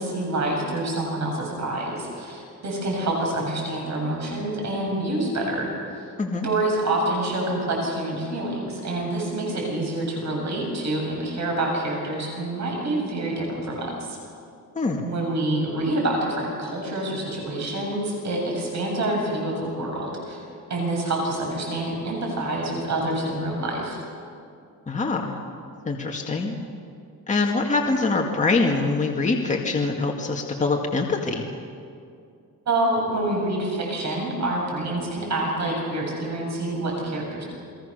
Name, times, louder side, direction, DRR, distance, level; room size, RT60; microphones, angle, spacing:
voice 1, 0.0-6.1 6.4-14.2 15.0-20.4 20.7-24.0 32.7-37.4, right 1 dB, 50° right, -1 dB, 7.2 m, -27 dB
voice 2, 14.8-15.1 24.9-25.4 25.9-26.6 27.3-31.4, left 3 dB, 20° left, 0 dB, 2.1 m, -24 dB
29.0 x 21.5 x 6.7 m, 2.4 s
cardioid pair, 140°, 35 cm